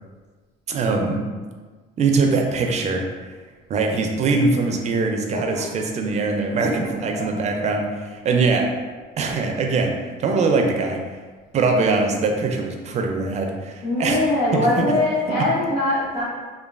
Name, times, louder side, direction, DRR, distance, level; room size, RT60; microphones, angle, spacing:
voice 1, 0.7-1.2 2.0-3.1 3.7-8.7 9.2-9.9 10.2-11.0 11.5-14.2 14.5-14.7 15.3-15.4, right 3 dB, 40° right, 2 dB, 0.4 m, -22 dB
voice 2, 5.3-5.6 7.4-7.5 13.8-16.2, left 2 dB, 85° left, -7 dB, 1.0 m, -22 dB
3.0 x 2.2 x 2.3 m, 1.4 s
cardioid pair, 110°, 17 cm